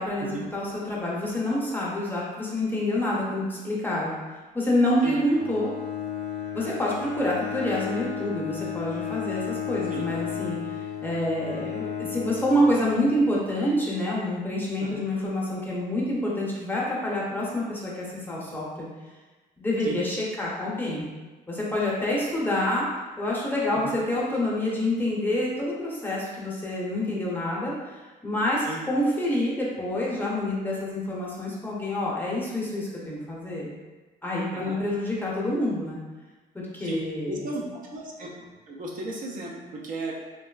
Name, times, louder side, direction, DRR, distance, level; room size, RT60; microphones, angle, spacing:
voice 1, 0.0-4.1 4.5-5.7 6.5-18.9 19.6-21.1 21.5-22.9 23.2-33.7 34.2-36.0 36.5-37.4, left 1 dB, 10° left, -5 dB, 0.6 m, -27 dB
Bowed string instrument, 5.3-13.5, left 8 dB, 70° left, 0.5 m, -34 dB
voice 2, 37.3-38.3 38.7-40.1, right 2 dB, 50° right, -2 dB, 0.5 m, -34 dB
2.9 x 2.3 x 2.3 m, 1.2 s
cardioid pair, 110°, 17 cm